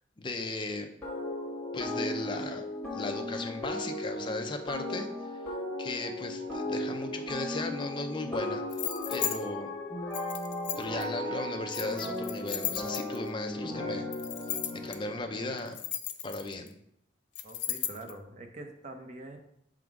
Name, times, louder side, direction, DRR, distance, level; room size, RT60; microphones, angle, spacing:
voice 1, 0.2-1.0 1.7-5.1 5.8-8.6 9.1-9.7 10.8-14.1 14.7-15.8 16.2-16.8, left 2 dB, 25° left, 5 dB, 0.5 m, -36 dB
sound 1, 1.0-15.6, left 1 dB, 10° left, 1.5 m, -36 dB
sound 2, 8.7-9.4 10.1-11.0 11.7-13.3 14.1-15.0 15.6-16.7 17.4-18.1, left 11 dB, 80° left, 0.6 m, -35 dB
voice 2, 17.4-19.4, right 2 dB, 40° right, 5 dB, 0.7 m, -44 dB
5.9 x 3.9 x 4.6 m, 0.74 s
head